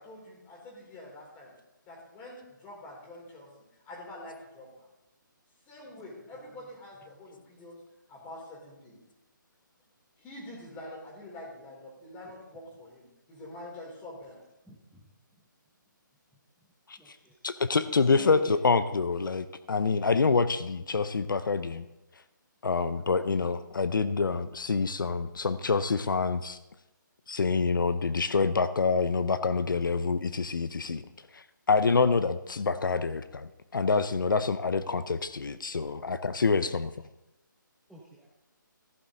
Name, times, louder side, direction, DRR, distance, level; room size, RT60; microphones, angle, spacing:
voice 1, 0.0-1.5 1.9-3.5 3.8-4.9 5.7-7.8 8.1-9.0 10.2-14.4, left 1 dB, 15° left, -2 dB, 3.6 m, -46 dB
voice 2, 14.7-15.0 17.0-17.3 18.1-18.4 37.9-38.3, right 2 dB, ahead, -5 dB, 0.9 m, -45 dB
voice 3, 17.4-21.8 22.6-26.6 27.3-31.0 31.3-36.9, left 4 dB, 75° left, 13 dB, 0.6 m, -27 dB
15.0 x 9.0 x 3.8 m, 0.97 s
figure-of-eight pair, 155°, 11 cm